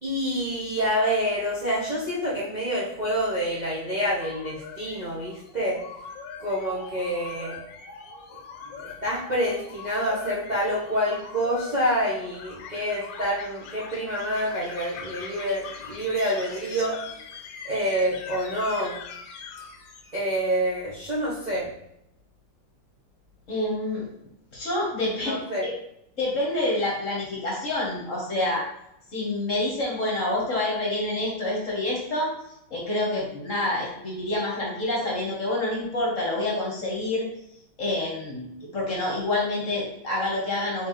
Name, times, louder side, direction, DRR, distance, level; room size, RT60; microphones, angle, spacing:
voice 1, 0.0-5.8 6.4-7.6 8.8-17.2 17.6-19.0 20.1-21.7 25.2-25.7, equal, 35° right, -8 dB, 0.7 m, -27 dB
sound 1, 3.9-20.5, left 5 dB, 75° left, 1.3 m, -42 dB
voice 2, 23.5-24.1 24.5-25.7 26.2-28.6 29.1-32.3 32.7-37.3 37.8-40.9, left 2 dB, 45° left, -4 dB, 1.4 m, -27 dB
4.4 x 4.0 x 3.0 m, 0.78 s
omnidirectional pair, 2.2 m